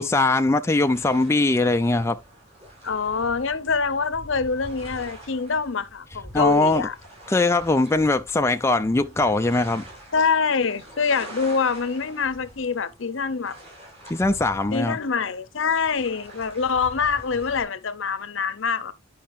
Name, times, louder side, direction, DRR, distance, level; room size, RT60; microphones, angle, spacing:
voice 1, 0.0-2.2 6.3-6.9 7.3-9.8 14.1-15.0, left 2 dB, 15° left, 0.4 m, -21 dB
sound 1, 0.7-17.6, equal, 30° right, 5.5 m, -45 dB
voice 2, 2.8-6.9 10.1-13.6 14.7-18.9, left 5 dB, 65° left, 0.7 m, -25 dB
10.5 x 5.5 x 2.5 m
head